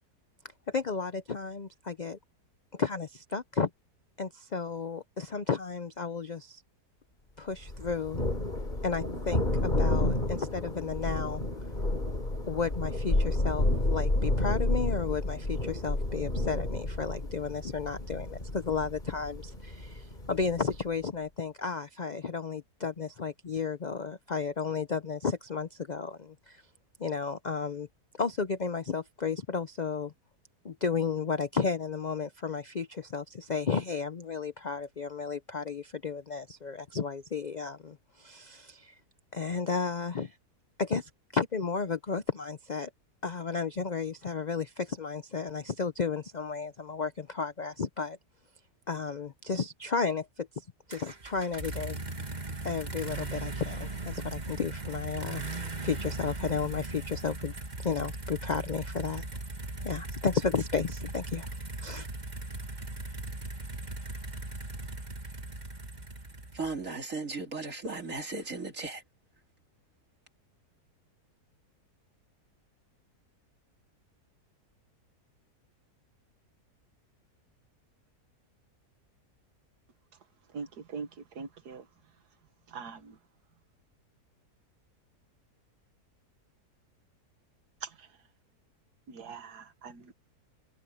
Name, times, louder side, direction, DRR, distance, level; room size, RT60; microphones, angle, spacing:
voice 1, 0.7-2.2 2.7-3.7 4.2-6.6 7.4-8.2 8.8-11.4 12.5-26.6 27.0-27.9 28.1-30.1 30.6-38.9 39.3-40.3 40.8-42.9 43.2-48.2 48.9-52.0 52.6-55.4 55.8-57.5 57.8-59.2 59.8-61.5 61.8-62.1, left 5 dB, 50° left, 0.5 m, -33 dB
Thunder, 7.7-20.9, left 1 dB, 30° left, 3.6 m, -30 dB
sound 1, 50.9-66.9, right 2 dB, 25° right, 2.2 m, -38 dB
voice 2, 66.5-69.0, right 3 dB, 55° right, 3.6 m, -36 dB
voice 3, 80.5-81.1 81.4-81.9 82.7-83.2 87.8-88.1 89.1-90.1, right 5 dB, 85° right, 1.9 m, -42 dB
omnidirectional pair, 1.7 m